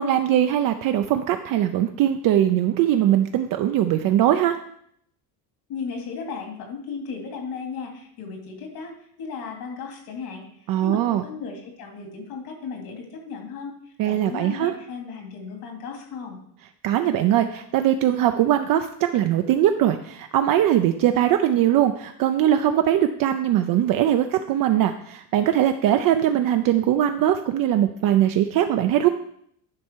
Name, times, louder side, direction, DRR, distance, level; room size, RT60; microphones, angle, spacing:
voice 1, 0.0-4.6 10.7-11.2 14.0-14.7 16.8-29.1, right 11 dB, 55° right, 7 dB, 0.6 m, -21 dB
voice 2, 5.7-13.7 14.0-16.4, left 5 dB, 65° left, 2 dB, 2.6 m, -35 dB
10.5 x 5.5 x 4.6 m, 0.69 s
cardioid pair, 155°, 40 cm